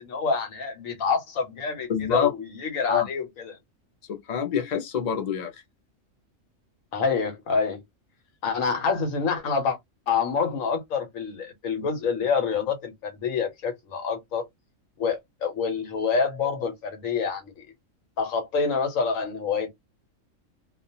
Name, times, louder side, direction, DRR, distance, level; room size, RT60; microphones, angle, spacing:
voice 1, 0.0-3.6 6.9-7.8 8.4-9.8 10.1-14.4 15.0-17.6 18.2-19.7, left 5 dB, 85° left, 1.2 m, -27 dB
voice 2, 1.9-2.3 2.9-3.1 4.1-5.6, left 8 dB, 40° left, 0.6 m, -26 dB
2.4 x 2.2 x 2.7 m
omnidirectional pair, 1.4 m